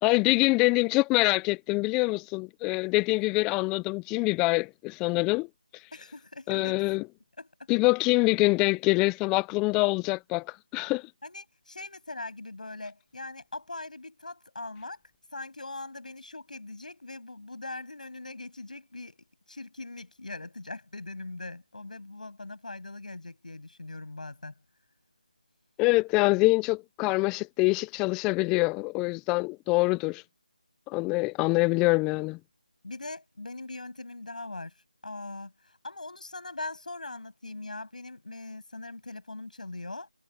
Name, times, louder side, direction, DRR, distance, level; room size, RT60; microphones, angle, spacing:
voice 1, 0.0-5.5 5.7-5.8 6.5-7.0 7.7-11.1 25.8-30.2 30.9-32.4, left 25 dB, 5° left, 0.5 m, -25 dB
voice 2, 5.9-6.8 7.4-7.7 11.2-15.0 15.3-24.5 32.8-34.7 35.0-40.1, left 2 dB, 65° left, 7.9 m, -41 dB
figure-of-eight pair, 165°, 5 cm